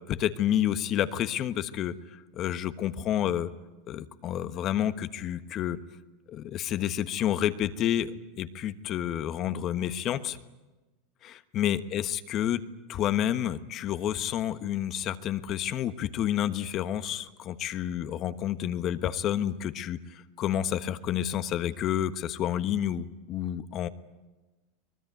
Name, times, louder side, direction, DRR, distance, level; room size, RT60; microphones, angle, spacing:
voice 1, 0.1-3.5 3.9-5.8 6.3-10.4 11.2-12.6 12.9-23.9, left 11 dB, 45° left, 11 dB, 1.2 m, -29 dB
23.5 x 20.5 x 9.3 m, 1.2 s
hypercardioid pair, 100°, 0 cm